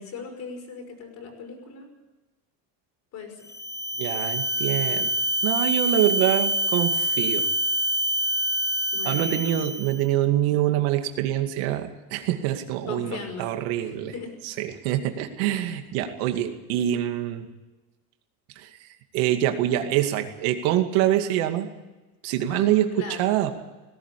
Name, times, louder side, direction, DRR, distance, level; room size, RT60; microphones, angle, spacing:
voice 1, 0.0-1.9 3.1-3.5 8.9-9.6 12.9-13.5 13.8-14.4 22.5-23.3, left 5 dB, 40° left, 3 dB, 5.7 m, -38 dB
sound 1, 3.4-10.0, right 1 dB, 5° left, 0.6 m, -26 dB
voice 2, 4.0-5.1 5.4-7.5 9.0-14.1 14.4-17.5 18.6-18.7 19.1-21.7 22.2-23.5, right 12 dB, 75° right, 6 dB, 2.4 m, -25 dB
18.5 x 17.0 x 8.4 m, 1.1 s
cardioid pair, 180°, 43 cm